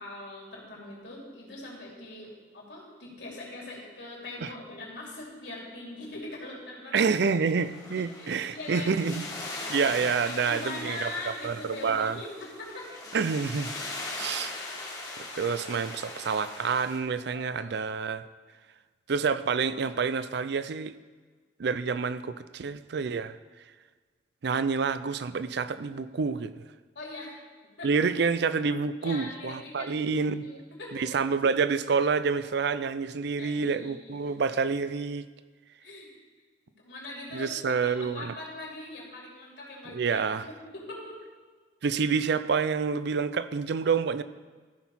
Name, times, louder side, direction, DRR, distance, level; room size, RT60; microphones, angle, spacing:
voice 1, 0.0-7.1 7.9-9.0 10.3-12.9 17.2-17.7 26.9-27.4 27.8-28.1 29.0-31.2 33.3-34.6 35.8-36.1 36.8-40.2 40.7-41.2, left 2 dB, 65° left, -4 dB, 3.2 m, -42 dB
voice 2, 6.9-9.3 9.7-11.1 11.4-12.2 13.1-13.7 14.2-14.5 15.3-18.2 19.1-20.9 21.6-23.4 24.4-26.6 27.8-30.4 30.9-35.2 37.3-38.3 39.9-40.4 41.8-44.2, right 5 dB, 60° right, 13 dB, 0.4 m, -28 dB
sound 1, 7.6-17.0, left 2 dB, 20° left, 1.6 m, -40 dB
14.5 x 6.2 x 4.3 m, 1.4 s
head